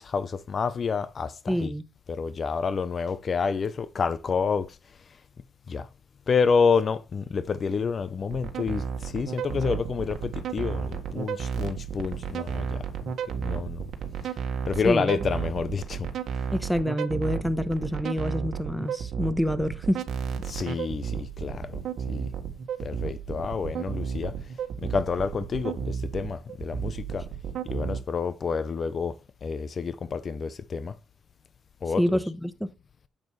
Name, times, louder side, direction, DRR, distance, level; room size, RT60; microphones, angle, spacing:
voice 1, 0.0-1.7 2.1-5.0 5.7-5.9 6.3-12.9 13.4-13.8 14.2-14.3 14.7-16.1 20.4-21.8 22.1-22.3 22.8-24.5 24.8-27.3 27.6-31.0 31.8-32.1, left 5 dB, 45° left, 0.7 m, -28 dB
voice 2, 1.5-1.8 14.8-15.2 16.5-20.0 32.0-32.7, equal, ahead, 1.0 m, -27 dB
sound 1, 8.3-28.0, right 7 dB, 65° right, 1.5 m, -32 dB
9.3 x 7.6 x 3.2 m
cardioid pair, 90°, 0 cm